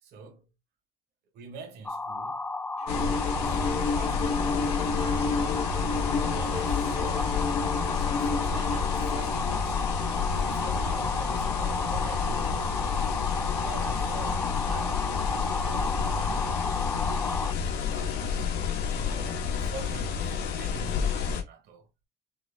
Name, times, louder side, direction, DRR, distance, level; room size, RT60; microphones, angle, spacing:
voice 1, 0.0-0.5 1.3-2.4 3.1-4.5 5.0-5.6 5.9-7.4 8.0-10.0 10.4-12.8 13.5-15.2 15.6-16.9 17.4-18.2 18.9-21.9, right 5 dB, 75° right, 1.5 m, -45 dB
sound 1, 1.8-17.5, left 3 dB, 10° left, 0.3 m, -33 dB
sound 2, 2.9-21.4, left 6 dB, 90° left, 1.0 m, -30 dB
Bowed string instrument, 2.9-9.4, left 4 dB, 40° left, 0.8 m, -32 dB
5.5 x 3.2 x 2.3 m
cardioid pair, 110°, 17 cm